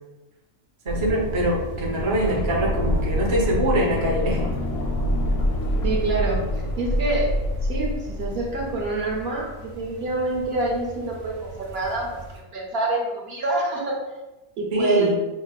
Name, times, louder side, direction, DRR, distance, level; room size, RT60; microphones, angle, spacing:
voice 1, 0.8-4.5 14.7-15.2, right 1 dB, 40° right, -3 dB, 0.4 m, -24 dB
sound 1, 0.9-12.4, right 2 dB, 80° right, 1.5 m, -35 dB
sound 2, 1.7-9.5 9.8-9.9, left 1 dB, 65° left, 0.7 m, -26 dB
voice 2, 5.8-7.3 7.7-12.2 12.5-14.0 14.6-15.1, right 2 dB, 55° right, -2 dB, 0.8 m, -26 dB
5.7 x 2.0 x 2.3 m, 1.1 s
omnidirectional pair, 1.4 m